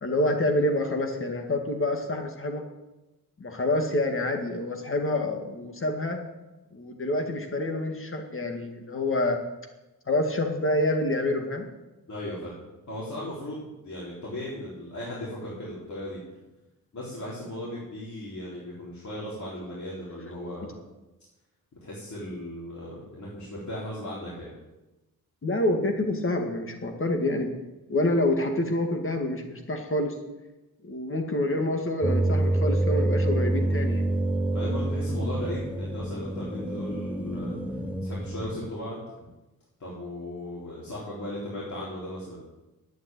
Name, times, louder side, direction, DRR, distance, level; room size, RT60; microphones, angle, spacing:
voice 1, 0.0-2.6 3.4-6.2 6.7-9.4 10.1-11.7 25.4-27.5 27.9-30.1 30.8-34.1, left 1 dB, 35° left, 4 dB, 2.1 m, -27 dB
voice 2, 12.1-12.5 12.9-16.2 16.9-20.8 21.8-24.5 34.5-37.6 38.0-39.0 39.8-42.4, left 1 dB, 50° left, -7 dB, 4.1 m, -37 dB
sound 1, 32.0-38.7, right 1 dB, 5° right, 0.9 m, -27 dB
11.5 x 9.4 x 9.2 m, 1.0 s
wide cardioid pair, 160°, 36 cm